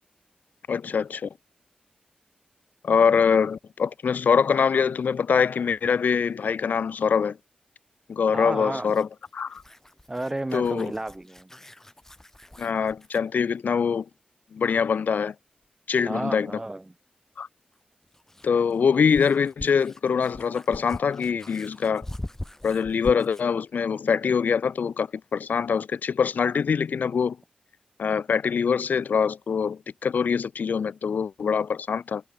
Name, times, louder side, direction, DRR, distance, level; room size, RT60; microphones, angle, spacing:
voice 1, 0.7-1.3 2.8-7.4 8.1-9.1 9.3-9.6 10.5-10.9 12.6-14.1 14.5-15.3 15.9-16.5 17.4-17.5 18.4-22.1 22.6-27.4 28.0-32.2, left 6 dB, 80° left, 2.3 m, -24 dB
voice 2, 8.3-9.0 10.1-11.5 16.0-16.8, right 2 dB, 20° right, 1.8 m, -32 dB
sound 1, 8.8-13.3 15.6-15.7 17.7-23.5, left 1 dB, 15° left, 4.8 m, -42 dB
wide cardioid pair, 75°, 3 cm